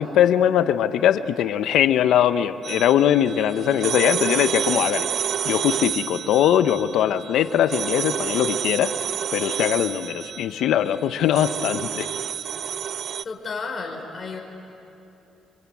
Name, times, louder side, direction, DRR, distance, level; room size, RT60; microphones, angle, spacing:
voice 1, 0.0-8.9 9.3-12.1, left 10 dB, 80° left, 11 dB, 1.0 m, -21 dB
sound 1, 2.6-13.2, right 8 dB, 60° right, 0.5 m, -29 dB
voice 2, 13.2-14.4, left 4 dB, 40° left, 2 dB, 5.1 m, -32 dB
26.0 x 25.0 x 8.5 m, 2.9 s
cardioid pair, 90°, 0 cm